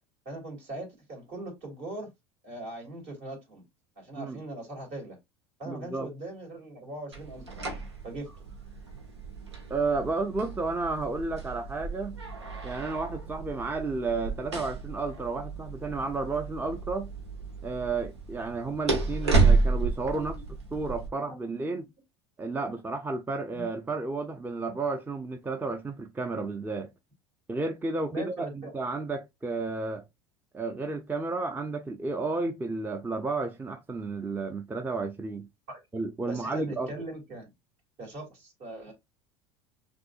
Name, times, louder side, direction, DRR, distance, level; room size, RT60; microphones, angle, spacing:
voice 1, 0.2-2.1 2.4-3.6 4.0-5.2 5.6-7.6 8.0-8.3 20.1-20.4 21.2-21.7 22.6-22.7 23.5-23.6 28.1-28.7 35.7-35.8 36.3-37.5 38.0-38.9, right 2 dB, 55° right, 2.9 m, -40 dB
voice 2, 5.7-6.1 9.7-12.2 12.6-17.1 17.6-20.4 20.7-21.9 22.4-26.9 27.5-30.0 30.5-35.5 35.9-36.9, right 3 dB, 15° right, 0.5 m, -32 dB
sound 1, 7.1-21.1, right 4 dB, 85° right, 1.1 m, -31 dB
6.1 x 2.7 x 2.4 m
hypercardioid pair, 75°, 14 cm